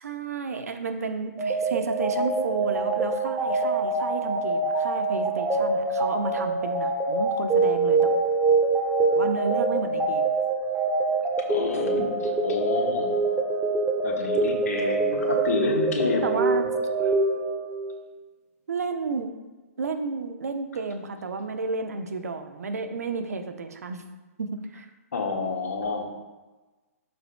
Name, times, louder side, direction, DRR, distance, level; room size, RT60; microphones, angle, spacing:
voice 1, 0.0-8.1 9.1-10.3 16.2-16.7 18.7-19.3 19.8-24.0 24.4-24.9, right 4 dB, 80° right, 7 dB, 0.8 m, -31 dB
sound 1, 1.4-18.0, right 3 dB, 15° right, 1.1 m, -25 dB
voice 2, 11.5-13.2 14.0-16.5 25.1-26.1, left 3 dB, 80° left, 1 dB, 1.6 m, -29 dB
12.0 x 5.4 x 2.3 m, 1.2 s
hypercardioid pair, 135°, 8 cm